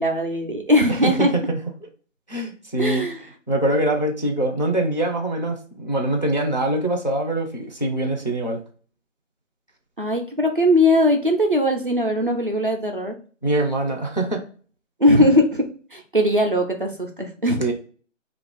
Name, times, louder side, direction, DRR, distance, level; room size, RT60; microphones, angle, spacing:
voice 1, 0.0-1.3 2.8-3.2 10.0-13.1 15.0-15.7 15.9-17.6, left 1 dB, 45° right, 3 dB, 0.4 m, -20 dB
voice 2, 0.9-1.6 2.3-3.1 3.5-8.6 13.4-14.4 15.2-15.3 17.6-17.7, right 1 dB, 35° left, 1 dB, 0.4 m, -23 dB
2.5 x 2.4 x 3.6 m, 0.41 s
figure-of-eight pair, 170°, 38 cm